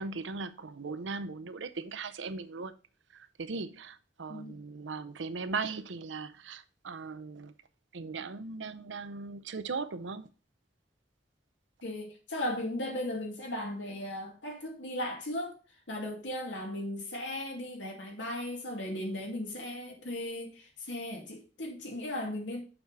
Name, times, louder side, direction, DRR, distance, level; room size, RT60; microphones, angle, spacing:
voice 1, 0.0-2.7 3.1-7.5 7.9-10.3, right 4 dB, 85° right, 0.6 m, -38 dB
voice 2, 4.3-4.6 11.8-15.5 15.9-22.6, left 1 dB, 80° left, 2.4 m, -37 dB
7.0 x 4.7 x 5.4 m
head